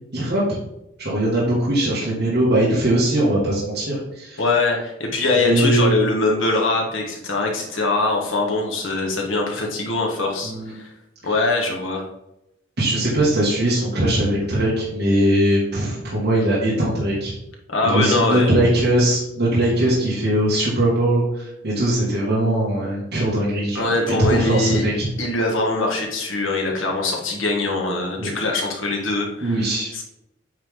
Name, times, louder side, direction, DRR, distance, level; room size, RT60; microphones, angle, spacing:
voice 1, 0.1-0.6 1.0-4.4 5.4-6.0 10.4-10.7 11.2-11.3 12.8-17.3 17.8-23.8 24.2-25.1 26.7-26.8 28.2-28.3 29.4-29.9, right 1 dB, 55° right, -8 dB, 2.1 m, -20 dB
voice 2, 4.4-10.9 11.2-12.1 17.7-18.5 23.7-24.8 25.2-29.6 29.9-30.0, left 2 dB, 75° left, 0 dB, 1.7 m, -22 dB
8.9 x 3.7 x 3.7 m, 0.86 s
head